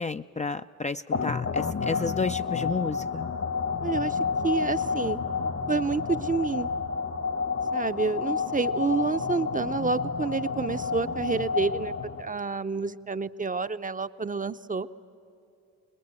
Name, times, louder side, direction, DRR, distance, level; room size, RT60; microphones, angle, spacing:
voice 1, 0.0-3.3, left 4 dB, 20° left, 8 dB, 0.5 m, -31 dB
sound 1, 1.1-12.5, left 5 dB, 45° left, 1.2 m, -30 dB
voice 2, 3.8-4.2 4.4-5.2 5.7-6.7 7.7-11.9 12.2-14.9, right 4 dB, 25° right, 12 dB, 0.7 m, -29 dB
24.0 x 20.5 x 8.9 m, 2.7 s
hypercardioid pair, 50°, 34 cm